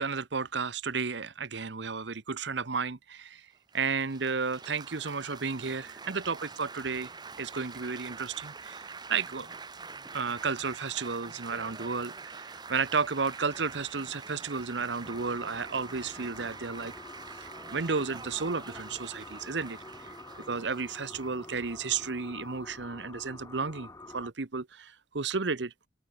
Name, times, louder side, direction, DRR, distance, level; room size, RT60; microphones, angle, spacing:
voice 1, 0.0-3.5 3.7-7.1 7.4-9.6 10.1-16.9 17.4-19.8 20.5-25.7, right 5 dB, 75° right, 1.0 m, -33 dB
Laughter / Applause / Chatter, 3.7-22.8, right 4 dB, 25° right, 1.4 m, -46 dB
sound 1, 15.0-24.3, left 2 dB, 15° left, 1.8 m, -48 dB
head